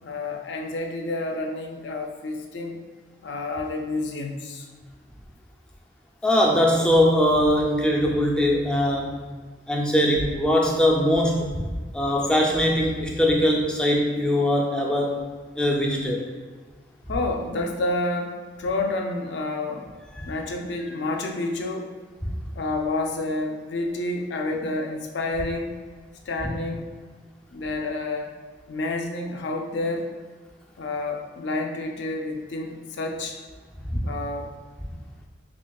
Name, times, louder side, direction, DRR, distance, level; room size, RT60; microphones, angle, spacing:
voice 1, 0.0-2.8 3.2-4.7 17.1-19.9 20.3-21.9 22.6-25.8 26.3-26.9 27.5-28.3 28.7-30.1 30.8-33.3 34.0-34.5, left 2 dB, 70° left, 2 dB, 0.4 m, -29 dB
voice 2, 6.2-9.3 9.7-11.5 11.9-15.2 15.6-16.3 20.2-20.3 22.2-22.3 33.9-34.0, equal, 5° left, -1 dB, 0.4 m, -21 dB
6.0 x 2.2 x 2.3 m, 1.4 s
head